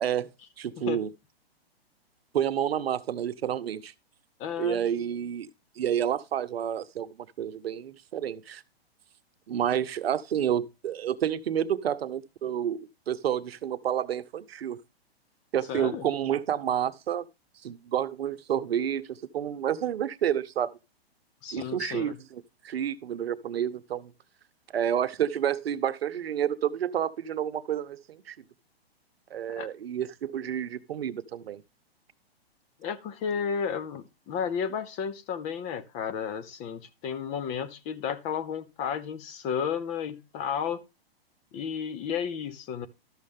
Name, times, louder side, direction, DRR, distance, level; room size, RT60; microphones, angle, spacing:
voice 1, 0.6-1.1 2.3-3.9 4.6-5.5 5.8-7.1 7.4-8.6 9.5-14.8 15.5-17.3 17.6-20.7 21.5-24.1 24.7-28.4 29.3-31.6, right 9 dB, 75° right, 0.9 m, -29 dB
voice 2, 4.4-4.8 15.7-16.0 21.4-22.2 29.5-29.7 32.8-40.8 41.5-42.9, left 7 dB, 25° left, 0.6 m, -32 dB
12.5 x 6.5 x 3.6 m
hypercardioid pair, 135°, 31 cm